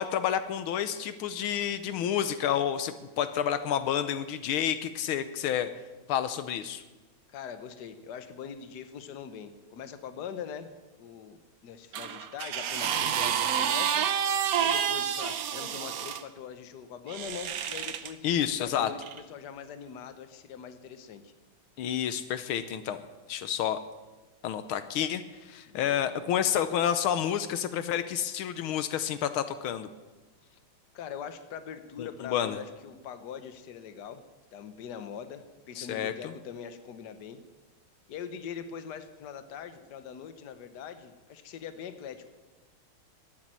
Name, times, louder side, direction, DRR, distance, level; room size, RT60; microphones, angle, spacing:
voice 1, 0.0-5.7 6.1-6.8 18.2-18.9 21.8-23.0 23.3-23.8 24.4-29.9 32.0-32.6 35.8-36.3, left 9 dB, 80° left, 12 dB, 1.6 m, -29 dB
voice 2, 7.3-21.3 25.7-26.0 30.4-30.6 30.9-34.2 34.5-37.4 38.1-42.3, left 7 dB, 55° left, 10 dB, 1.5 m, -42 dB
sound 1, 11.9-16.2 17.1-18.1 19.0-19.2, right 8 dB, 60° right, 1.0 m, -29 dB
12.0 x 10.5 x 9.0 m, 1.2 s
omnidirectional pair, 2.3 m